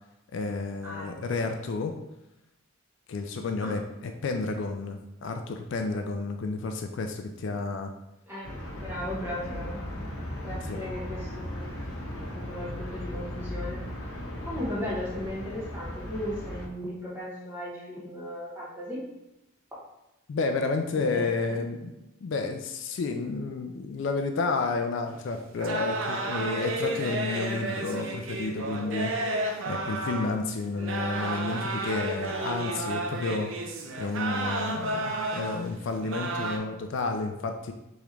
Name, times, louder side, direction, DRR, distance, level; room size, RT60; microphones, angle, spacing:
voice 1, 0.3-2.0 3.1-7.9 10.4-10.8 20.3-21.9 22.2-29.1 29.7-33.5 34.0-37.7, left 3 dB, 60° left, 5 dB, 0.3 m, -31 dB
voice 2, 0.8-1.1 3.6-3.7 8.3-9.8 10.4-11.8 12.2-13.8 14.5-19.0 20.9-21.6 30.7-31.2, left 1 dB, 10° right, -7 dB, 1.1 m, -37 dB
sound 1, 8.4-16.7, left 1 dB, 85° left, 0.8 m, -37 dB
sound 2, 25.1-25.2 25.6-30.4 30.8-35.7 36.0-36.6, right 2 dB, 75° right, 0.5 m, -32 dB
3.6 x 3.0 x 3.2 m, 0.93 s
head